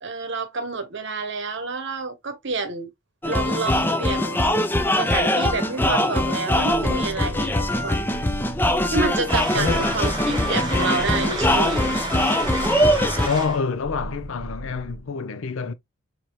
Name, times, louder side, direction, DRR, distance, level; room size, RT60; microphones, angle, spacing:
voice 1, 0.0-2.9 3.2-4.5 4.9-8.0 8.9-12.1, right 3 dB, 55° right, 0.9 m, -28 dB
sound 1, 3.2-13.3, left 1 dB, 10° left, 0.4 m, -22 dB
sound 2, 6.6-15.1, right 2 dB, 90° right, 0.7 m, -38 dB
sound 3, 9.3-13.6, right 2 dB, 20° right, 1.2 m, -31 dB
voice 2, 9.5-10.0 13.2-15.7, left 5 dB, 65° left, 0.5 m, -27 dB
4.6 x 2.7 x 2.8 m
head